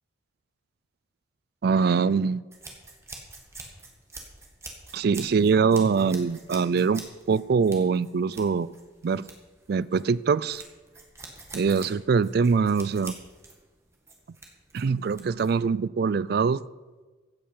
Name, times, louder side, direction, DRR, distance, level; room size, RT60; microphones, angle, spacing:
voice 1, 1.6-2.4 4.9-8.7 9.0-9.3 9.7-10.6 11.5-13.1 14.7-16.6, right 5 dB, 50° right, 19 dB, 0.3 m, -23 dB
sound 1, 2.5-15.7, right 3 dB, 15° right, 1.8 m, -46 dB
15.5 x 8.7 x 5.7 m, 1.3 s
head